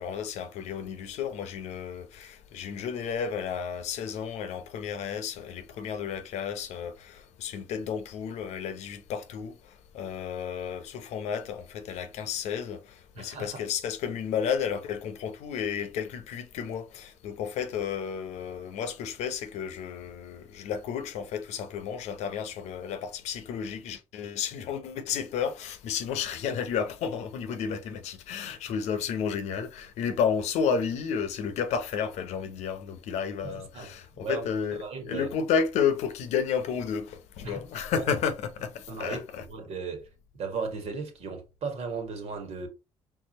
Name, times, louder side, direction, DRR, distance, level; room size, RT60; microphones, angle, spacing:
voice 1, 0.0-9.5 9.9-12.8 13.2-39.4, left 7 dB, 80° left, 0.8 m, -32 dB
voice 2, 13.2-13.6 33.4-35.3 37.4-37.6 37.9-38.1 38.9-40.1 40.3-42.7, right 4 dB, 65° right, 1.8 m, -36 dB
4.7 x 3.6 x 3.0 m
supercardioid pair, 65°, 11 cm